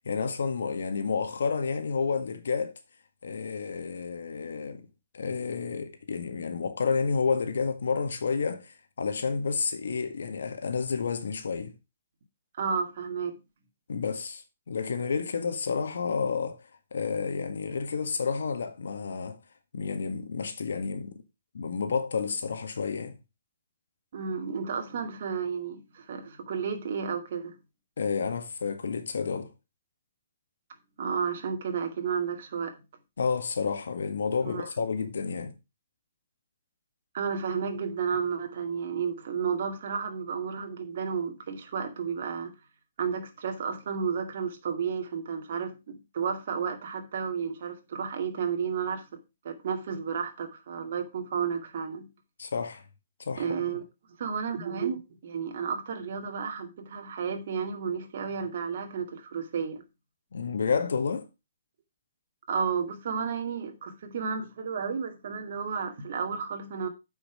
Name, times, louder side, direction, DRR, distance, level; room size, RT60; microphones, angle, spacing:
voice 1, 0.1-2.7 3.2-4.9 5.1-11.7 13.9-16.6 16.9-19.4 19.7-21.2 21.5-23.2 28.0-29.5 33.2-35.5 52.4-52.8 53.2-53.5 60.3-61.3, left 5 dB, 80° left, 1.7 m, -30 dB
voice 2, 12.6-13.4 24.1-27.6 31.0-32.7 34.5-34.7 37.1-42.5 43.0-49.2 49.4-52.1 53.4-53.8 54.2-59.8 62.5-66.9, right 6 dB, 60° right, 2.1 m, -32 dB
8.4 x 5.9 x 5.0 m
hypercardioid pair, 145°, 0 cm